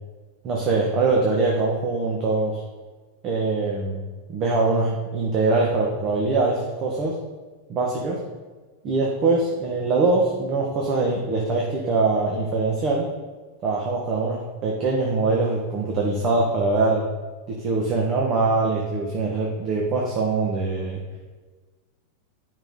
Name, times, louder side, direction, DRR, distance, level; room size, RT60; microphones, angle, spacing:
voice 1, 0.4-2.6 3.2-4.0 4.3-7.2 7.7-8.2 8.8-13.1 13.6-17.1 17.5-21.0, right 3 dB, 35° right, -1 dB, 1.4 m, -23 dB
9.2 x 5.6 x 5.5 m, 1.3 s
supercardioid pair, 140°, 0 cm